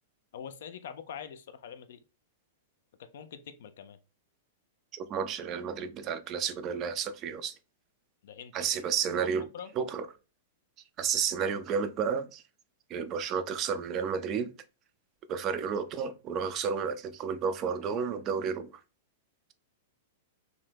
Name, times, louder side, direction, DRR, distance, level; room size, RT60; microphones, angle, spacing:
voice 1, 0.3-2.0 3.0-4.0 8.2-8.7 9.5-9.7, left 8 dB, 60° left, 0.3 m, -44 dB
voice 2, 4.9-7.5 8.5-9.5 9.8-10.1 11.0-12.4 12.9-14.5 15.3-18.7, right 6 dB, 35° right, 0.3 m, -31 dB
2.6 x 2.1 x 3.1 m
figure-of-eight pair, 100°, 0 cm